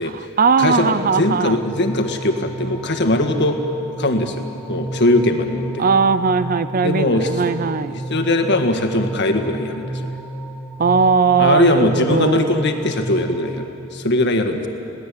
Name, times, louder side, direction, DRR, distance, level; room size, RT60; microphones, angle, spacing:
voice 1, 0.0-1.6 5.8-8.0 10.8-12.5, right 5 dB, 45° right, 13 dB, 0.6 m, -18 dB
voice 2, 0.6-3.6 4.0-5.8 6.8-7.3 7.9-10.0 11.4-14.7, left 2 dB, 60° left, 5 dB, 1.7 m, -20 dB
sound 1, 1.0-13.7, right 2 dB, 10° left, 2.3 m, -32 dB
21.0 x 17.5 x 8.4 m, 2.7 s
head